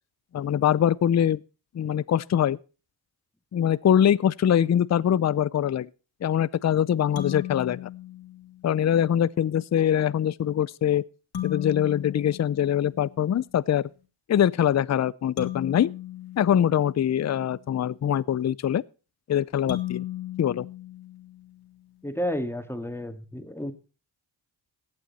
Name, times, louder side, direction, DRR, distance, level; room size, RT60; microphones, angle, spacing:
voice 1, 0.3-1.4 1.7-2.6 3.5-5.9 6.2-7.9 8.6-11.0 11.4-13.9 14.3-15.9 16.4-18.8 19.3-20.0 20.4-20.7, left 10 dB, 35° left, 0.5 m, -23 dB
sound 1, 7.2-8.8 11.3-13.4 15.4-17.5 19.7-21.7, left 13 dB, 55° left, 2.8 m, -36 dB
voice 2, 22.0-23.7, equal, 5° left, 1.9 m, -31 dB
15.5 x 8.7 x 4.2 m
cardioid pair, 75°, 46 cm